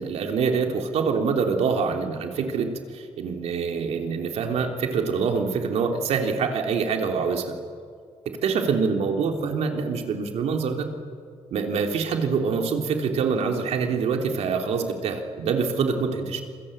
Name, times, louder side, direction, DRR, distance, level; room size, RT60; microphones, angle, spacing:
voice 1, 0.0-7.5 8.2-10.9 11.5-16.4, right 5 dB, 85° right, 3 dB, 3.5 m, -25 dB
27.0 x 23.0 x 9.0 m, 2.1 s
wide cardioid pair, 150°, 11 cm